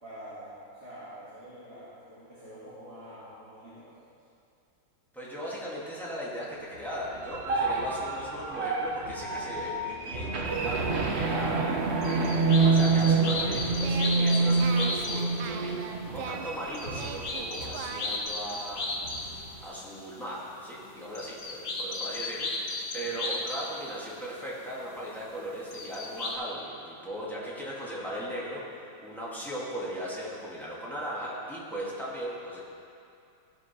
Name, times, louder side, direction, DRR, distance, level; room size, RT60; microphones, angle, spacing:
voice 1, 0.0-4.0 22.9-23.1, equal, 30° right, -12 dB, 2.5 m, -46 dB
voice 2, 5.1-32.6, equal, ahead, -7 dB, 2.0 m, -38 dB
sound 1, 6.9-18.0 18.3-18.5 18.8-19.5, right 3 dB, 65° right, 0.6 m, -27 dB
sound 2, 11.5-11.6 12.0-15.3 16.6-19.4 19.7-20.5 20.8-23.8 24.8-24.9 25.6-26.3, left 2 dB, 45° left, 1.2 m, -35 dB
Singing, 12.0-18.3, right 6 dB, 85° right, 1.5 m, -40 dB
15.0 x 5.2 x 6.0 m, 2.5 s
omnidirectional pair, 2.2 m